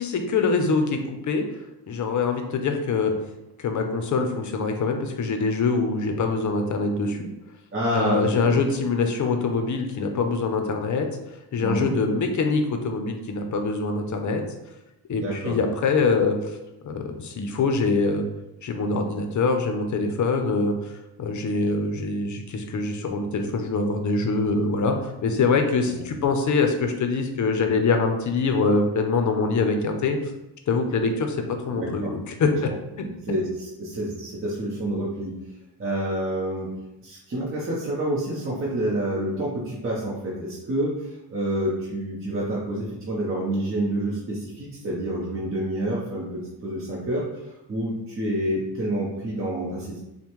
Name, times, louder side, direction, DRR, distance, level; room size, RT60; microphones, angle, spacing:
voice 1, 0.0-1.5 1.9-3.2 3.6-7.3 7.9-11.1 11.5-14.4 15.1-16.6 16.8-18.2 18.6-20.9 21.2-25.0 25.2-30.2 30.7-32.7, left 4 dB, 45° left, 5 dB, 0.6 m, -24 dB
voice 2, 7.7-8.5 11.6-11.9 15.2-15.5 25.9-26.0 31.8-32.1 33.0-33.5 33.8-35.4 35.8-36.7 37.0-40.9 41.3-47.2 47.7-50.0, right 1 dB, 30° right, -6 dB, 0.9 m, -28 dB
5.3 x 2.2 x 3.0 m, 0.93 s
cardioid pair, 105°, 40 cm